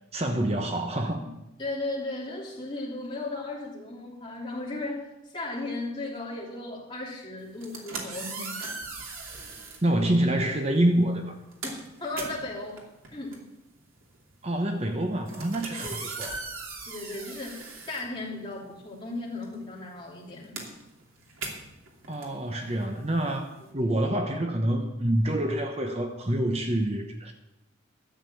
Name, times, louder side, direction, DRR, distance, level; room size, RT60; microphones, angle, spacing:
voice 1, 0.1-1.2 9.8-11.3 14.4-16.3 22.1-27.3, right 1 dB, 30° right, 5 dB, 0.9 m, -27 dB
voice 2, 1.6-8.6 11.6-12.8 13.1-13.4 15.7-16.0 16.9-20.6 23.8-23.9, left 2 dB, 25° left, -3 dB, 3.0 m, -36 dB
sound 1, 7.5-9.9 10.7-10.9 11.2-18.8 19.0-23.7, right 3 dB, 90° right, 2.7 m, -40 dB
12.5 x 7.4 x 8.4 m, 0.94 s
head